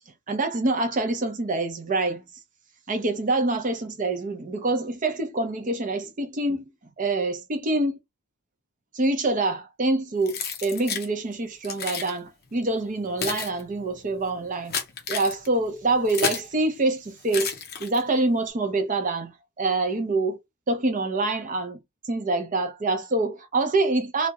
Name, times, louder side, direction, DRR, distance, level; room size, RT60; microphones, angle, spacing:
voice 1, 0.3-2.2 2.9-6.6 7.0-8.0 8.9-14.8 15.1-17.5 17.8-20.4 20.7-21.8 22.0-24.3, right 2 dB, 35° right, 0.5 m, -26 dB
Keys jangling, 10.3-11.1 11.6-12.1 12.8-16.5 17.3-18.2, left 6 dB, 45° left, 0.6 m, -31 dB
2.3 x 2.0 x 2.8 m
head